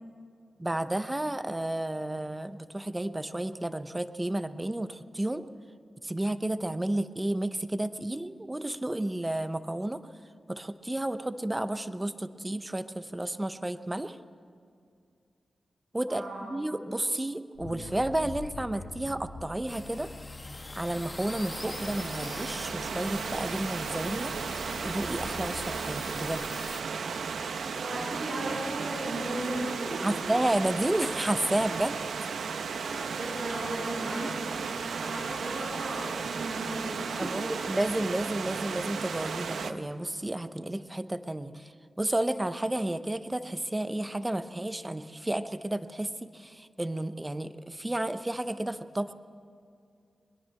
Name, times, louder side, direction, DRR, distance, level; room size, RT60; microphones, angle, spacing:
voice 1, 0.6-5.4 6.0-10.0 10.5-14.2 15.9-20.1 20.8-24.3 24.8-26.8 30.0-32.0 37.2-49.1, right 1 dB, 15° right, 11 dB, 0.7 m, -32 dB
voice 2, 16.1-16.6 27.6-30.2 32.8-34.3 34.8-37.5, right 1 dB, 55° right, -8 dB, 7.1 m, -36 dB
sound 1, 17.5-25.7, left 3 dB, 75° left, 2.4 m, -45 dB
sound 2, 19.7-26.8, left 2 dB, 20° left, 1.3 m, -43 dB
Stream / Liquid, 20.8-39.7, right 5 dB, 90° right, 0.9 m, -35 dB
22.0 x 21.0 x 7.6 m, 2.4 s
wide cardioid pair, 135°, 0 cm